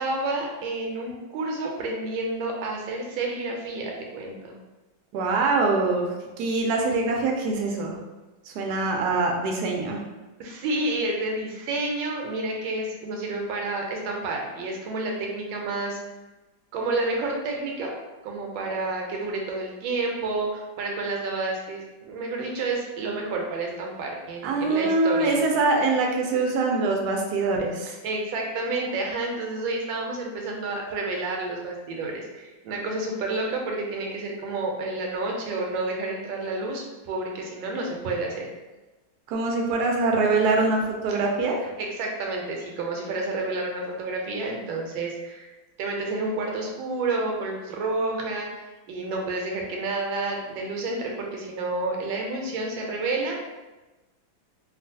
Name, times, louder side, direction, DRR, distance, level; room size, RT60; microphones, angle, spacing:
voice 1, 0.0-4.6 8.6-8.7 10.4-16.0 16.7-17.9 18.2-25.4 28.0-38.5 41.1-41.2 41.8-45.5 45.8-53.4, right 2 dB, 90° right, 0 dB, 1.4 m, -30 dB
voice 2, 5.1-8.0 8.5-10.0 24.4-28.0 39.3-41.7, right 3 dB, 70° right, 1 dB, 0.9 m, -24 dB
3.0 x 2.4 x 2.6 m, 1.1 s
omnidirectional pair, 2.1 m